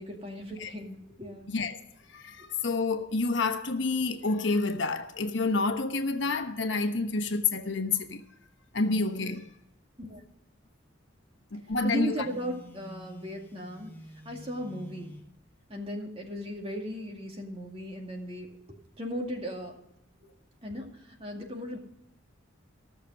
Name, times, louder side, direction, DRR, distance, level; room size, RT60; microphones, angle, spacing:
voice 1, 0.0-1.5 2.4-2.5 10.0-10.2 11.8-13.9 14.3-15.2 15.7-19.8 20.6-21.8, equal, 30° right, 2.2 m, -37 dB
voice 2, 2.1-8.2 8.7-9.5 11.5-12.2, left 3 dB, 65° left, 1.1 m, -28 dB
Telephone, 12.2-15.3, left 1 dB, 10° left, 1.0 m, -48 dB
16.0 x 6.8 x 6.2 m
head